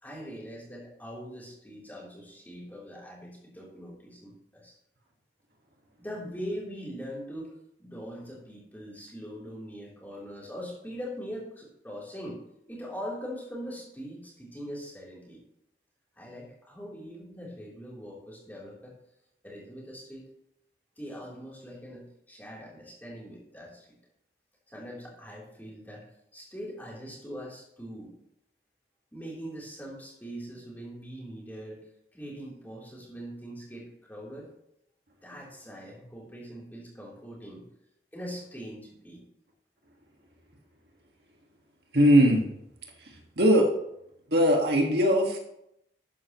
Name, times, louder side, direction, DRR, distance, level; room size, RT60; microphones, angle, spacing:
voice 1, 0.0-4.7 6.0-12.4 12.7-15.4 16.1-18.9 19.4-20.3 21.0-23.9 24.7-26.1 26.3-28.1 29.1-31.8 32.1-34.5 35.2-37.6 38.1-39.2, equal, 10° left, -5 dB, 3.4 m, -42 dB
voice 2, 41.9-42.4 43.4-43.7 44.3-45.4, equal, 70° right, 2 dB, 1.7 m, -20 dB
12.5 x 9.2 x 3.1 m, 0.78 s
head